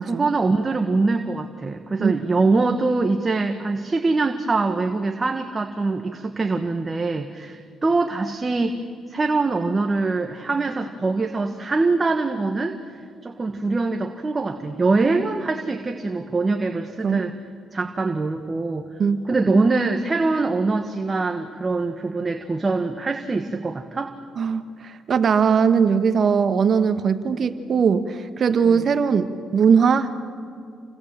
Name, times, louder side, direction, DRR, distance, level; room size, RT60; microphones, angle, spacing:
voice 1, 0.0-8.8 9.1-12.8 13.2-17.4 17.7-18.9 19.2-24.1 28.7-28.8, right 3 dB, 25° right, 5 dB, 1.5 m, -23 dB
voice 2, 24.4-30.1, right 6 dB, 50° right, 9 dB, 1.5 m, -20 dB
29.0 x 25.0 x 7.6 m, 2.4 s
cardioid pair, 90°, 0 cm